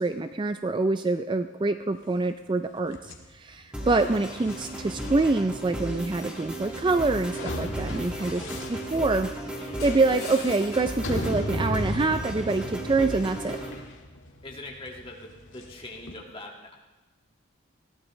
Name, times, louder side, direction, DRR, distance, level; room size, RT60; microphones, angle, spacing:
voice 1, 0.0-8.4 8.7-9.3 9.6-13.6, right 3 dB, 20° right, 9 dB, 0.3 m, -26 dB
sound 1, 2.9-16.2, left 1 dB, 65° left, 1.8 m, -37 dB
sound 2, 3.7-13.7, right 1 dB, 5° right, 1.6 m, -35 dB
Car / Engine / Glass, 4.0-6.2 6.9-11.1, left 5 dB, 85° left, 2.7 m, -47 dB
voice 2, 8.2-9.2 14.4-16.7, left 2 dB, 25° left, 0 dB, 1.7 m, -43 dB
20.0 x 15.0 x 3.1 m, 1.2 s
head